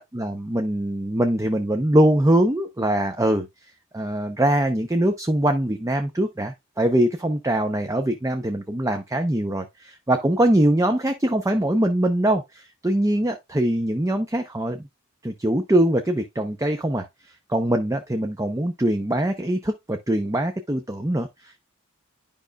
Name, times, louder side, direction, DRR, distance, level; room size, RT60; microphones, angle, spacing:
voice 1, 0.0-3.5 3.9-14.9 15.2-17.1 17.5-21.6, right 1 dB, 15° right, 0.6 m, -22 dB
10.5 x 5.1 x 2.3 m
head